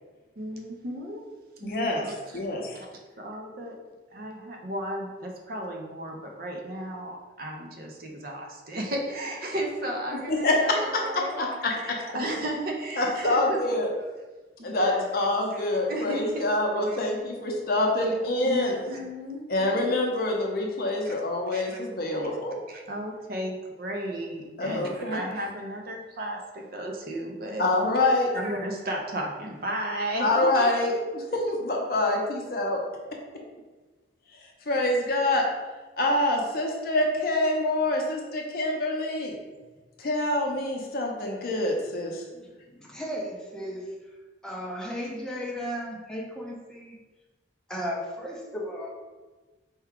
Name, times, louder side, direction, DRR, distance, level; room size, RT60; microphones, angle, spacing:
voice 1, 0.4-1.3 1.6-2.4 2.7-2.9 3.2-3.8 4.1-11.4 11.8-14.1 14.6-15.2 15.5-16.5 16.9-17.0 18.4-19.9 21.0-21.1 21.5-21.8 22.7-27.7 28.3-30.9, right 1 dB, 50° right, 1 dB, 0.5 m, -34 dB
voice 2, 1.6-2.0 2.3-2.7 10.3-11.0 11.4-11.9 13.0-13.9 14.6-18.8 19.5-22.5 24.6-25.2 27.6-28.3 30.2-32.8 34.7-35.4 36.0-39.3 40.0-42.2, left 2 dB, 50° left, 0 dB, 0.6 m, -26 dB
voice 3, 42.4-43.9 44.4-47.0 47.7-48.9, equal, 5° left, -3 dB, 0.5 m, -35 dB
4.4 x 2.3 x 3.6 m, 1.2 s
head